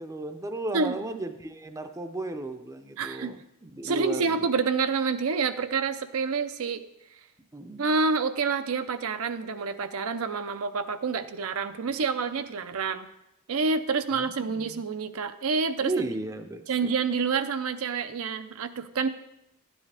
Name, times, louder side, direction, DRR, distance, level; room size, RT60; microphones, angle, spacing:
voice 1, 0.0-4.5 7.5-7.8 14.1-14.8 15.8-16.9, right 2 dB, 15° right, 8 dB, 0.5 m, -35 dB
voice 2, 3.0-3.3 3.8-6.8 7.8-13.1 13.5-16.0 16.7-19.1, right 4 dB, 70° right, 9 dB, 0.5 m, -28 dB
12.5 x 9.8 x 3.4 m, 0.85 s
head